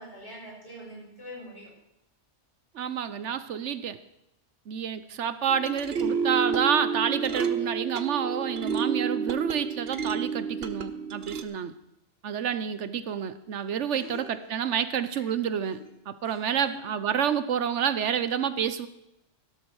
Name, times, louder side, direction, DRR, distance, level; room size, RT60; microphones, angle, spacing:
voice 1, 0.0-1.7 13.8-14.4 15.1-15.2 16.2-16.8, equal, 55° left, -5 dB, 7.3 m, -44 dB
voice 2, 2.7-4.0 4.7-11.7 12.2-15.8 16.1-18.9, right 8 dB, 80° right, 13 dB, 1.1 m, -29 dB
sound 1, 5.5-11.4, right 5 dB, 60° right, 1.1 m, -30 dB
16.0 x 12.5 x 4.8 m, 0.87 s
omnidirectional pair, 1.2 m